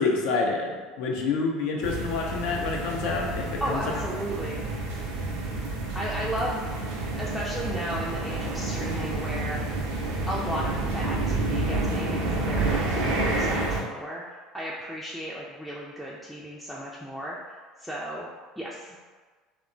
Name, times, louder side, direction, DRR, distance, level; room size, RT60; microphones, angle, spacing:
voice 1, 0.0-3.9, left 4 dB, 60° left, 0 dB, 0.4 m, -28 dB
sound 1, 1.8-13.8, right 2 dB, 65° right, 0.4 m, -29 dB
voice 2, 3.6-4.6 5.9-6.6 7.2-9.6 10.3-17.4 17.8-18.3 18.6-18.9, right 1 dB, ahead, -6 dB, 0.4 m, -34 dB
2.8 x 2.1 x 2.5 m, 1.4 s
figure-of-eight pair, 65°, 0 cm